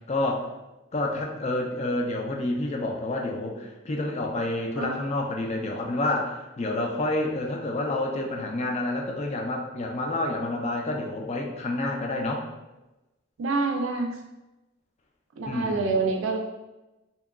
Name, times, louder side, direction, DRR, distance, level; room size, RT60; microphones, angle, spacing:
voice 1, 0.1-0.5 0.9-12.5 15.5-16.0, left 2 dB, 35° left, 1 dB, 0.4 m, -29 dB
voice 2, 13.4-14.2 15.4-16.4, right 3 dB, 85° right, 3 dB, 0.4 m, -26 dB
2.8 x 2.2 x 2.3 m, 1.0 s
head